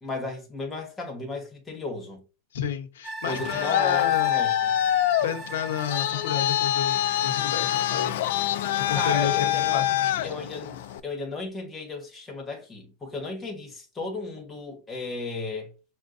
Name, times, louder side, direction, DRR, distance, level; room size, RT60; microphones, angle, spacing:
voice 1, 0.0-2.2 3.3-4.7 8.9-9.8 10.2-15.7, left 3 dB, 10° left, 1.2 m, -34 dB
voice 2, 2.5-4.3 5.2-8.1 8.7-10.3, left 8 dB, 85° left, 0.8 m, -31 dB
sound 1, 3.0-10.3 10.7-10.8, right 2 dB, 20° right, 0.5 m, -40 dB
Traffic noise roadway noise, 3.3-11.0, left 12 dB, 70° left, 0.4 m, -25 dB
6.2 x 2.2 x 2.6 m
supercardioid pair, 150°, 0 cm